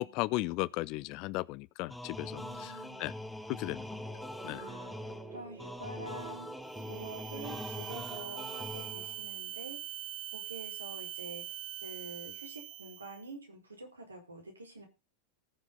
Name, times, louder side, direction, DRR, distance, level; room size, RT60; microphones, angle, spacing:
voice 1, 0.0-2.7 3.0-3.1 3.5-3.9 4.4-4.6, left 20 dB, 50° left, 0.5 m, -35 dB
sound 1, 1.9-9.3, left 1 dB, 5° left, 1.3 m, -43 dB
voice 2, 2.4-3.0 4.6-4.9 5.3-6.5 6.9-9.8 10.3-11.4 11.8-14.9, right 2 dB, 85° right, 4.7 m, -47 dB
sound 2, 4.1-9.2, right 7 dB, 25° right, 3.1 m, -51 dB
sound 3, 6.7-13.3, right 14 dB, 45° right, 0.7 m, -43 dB
19.5 x 7.2 x 3.9 m
figure-of-eight pair, 85°, 0 cm